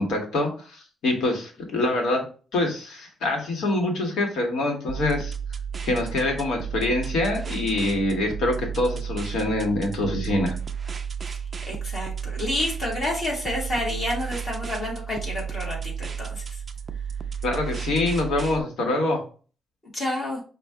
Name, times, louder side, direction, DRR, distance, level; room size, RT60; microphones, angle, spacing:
voice 1, 0.0-2.3 2.5-5.3 5.8-10.5 17.4-19.2, left 2 dB, 80° left, 2 dB, 1.4 m, -25 dB
sound 1, 4.9-18.6, right 7 dB, 25° right, 0.3 m, -33 dB
voice 2, 11.7-16.6 19.9-20.4, left 1 dB, 30° left, -2 dB, 1.8 m, -29 dB
5.5 x 2.5 x 3.5 m, 0.38 s
cardioid pair, 165°, 0 cm